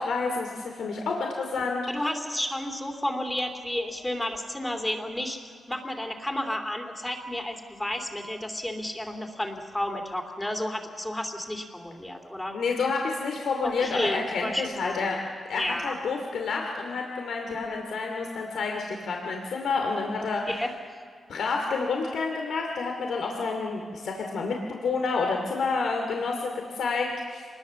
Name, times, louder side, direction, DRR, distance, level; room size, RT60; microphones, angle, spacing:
voice 1, 0.0-1.8 12.5-15.2 15.5-20.4 21.3-27.5, left 4 dB, 85° left, 2 dB, 2.7 m, -29 dB
voice 2, 1.9-12.6 13.6-15.2 15.6-15.9 17.6-17.8 20.5-20.7, left 1 dB, 10° left, 4 dB, 2.7 m, -32 dB
27.0 x 20.5 x 7.1 m, 2.1 s
wide cardioid pair, 130°, 0 cm